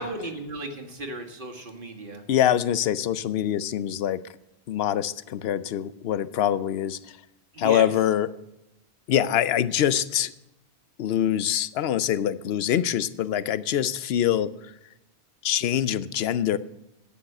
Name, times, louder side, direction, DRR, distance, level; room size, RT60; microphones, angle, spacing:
voice 1, 0.0-2.2 7.5-7.9, right 2 dB, 50° right, 3 dB, 1.8 m, -35 dB
voice 2, 2.3-4.2 4.7-7.0 7.6-8.3 9.1-10.3 11.0-14.5 15.4-16.6, left 10 dB, 70° left, 16 dB, 0.8 m, -24 dB
12.0 x 8.5 x 6.6 m, 0.90 s
omnidirectional pair, 1.1 m